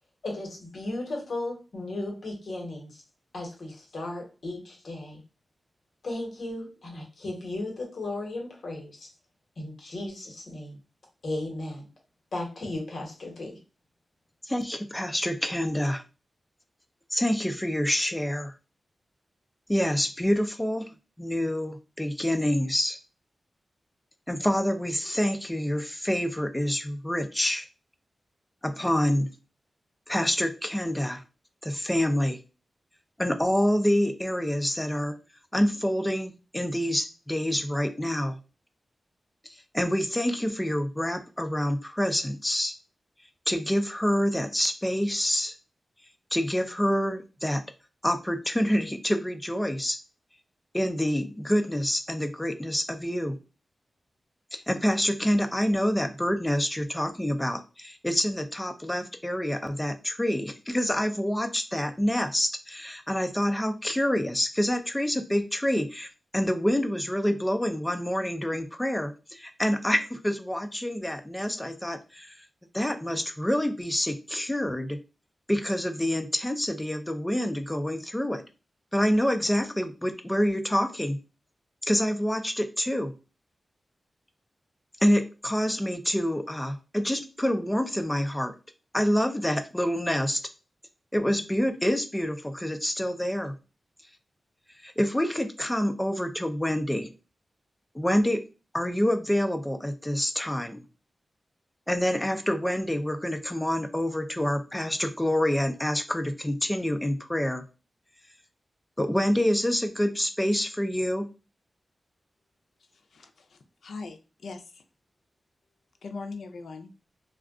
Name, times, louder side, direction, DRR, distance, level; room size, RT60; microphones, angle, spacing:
voice 1, 0.2-3.0 3.3-5.2 6.0-9.1 9.6-10.8 11.2-11.9 12.3-13.6, left 2 dB, 65° left, 0 dB, 1.1 m, -35 dB
voice 2, 14.4-16.0 17.1-18.5 19.7-20.9 21.2-23.0 24.3-27.7 28.6-29.3 30.1-31.2 31.6-32.4 33.2-35.2 35.5-38.4 39.7-42.7 43.5-45.5 46.3-47.6 48.0-50.0 50.7-53.4 54.5-72.4 72.7-75.0 75.5-78.4 78.9-81.2 81.8-83.1 85.0-88.5 88.9-90.4 91.1-93.6 94.8-97.1 97.9-98.4 98.7-100.8 101.9-107.6 109.0-111.3, equal, 10° left, 7 dB, 0.3 m, -27 dB
voice 3, 112.9-114.8 116.0-116.9, left 4 dB, 90° left, 6 dB, 0.4 m, -41 dB
2.3 x 2.2 x 3.5 m, 0.31 s
wide cardioid pair, 140°, 0 cm